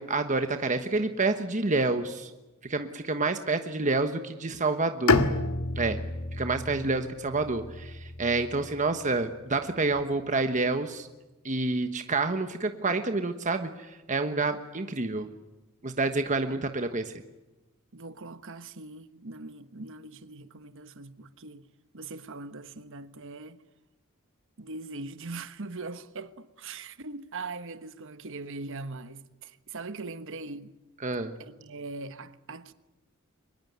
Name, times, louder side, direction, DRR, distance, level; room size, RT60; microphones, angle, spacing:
voice 1, 0.0-2.3 2.6-5.3 5.8-6.0 6.4-11.1 11.4-15.3 15.8-17.1 31.0-31.3, right 3 dB, 35° right, 1.2 m, -28 dB
Bowed string instrument, 5.1-9.0, left 3 dB, 80° left, 1.9 m, -29 dB
voice 2, 17.9-21.7 21.9-23.6 24.6-30.7 31.4-32.7, right 3 dB, 60° right, 1.3 m, -41 dB
24.0 x 21.0 x 9.5 m
head